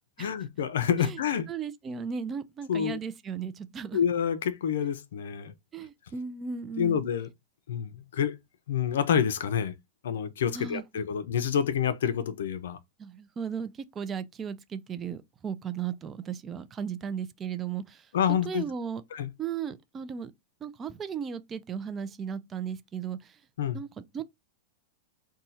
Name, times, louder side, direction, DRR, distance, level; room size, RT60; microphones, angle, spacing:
voice 1, 0.2-1.5 2.7-3.0 3.9-5.5 6.8-7.3 7.7-8.3 8.7-9.8 10.0-12.8 18.1-18.6 19.1-19.3 23.6-23.8, left 8 dB, 85° left, 0.6 m, -28 dB
voice 2, 1.5-4.0 5.7-7.0 10.5-10.8 13.0-18.1 18.4-19.0 19.4-20.3 20.6-23.4 23.7-24.2, right 7 dB, 20° right, 0.4 m, -36 dB
2.7 x 2.3 x 4.1 m
supercardioid pair, 150°, 0 cm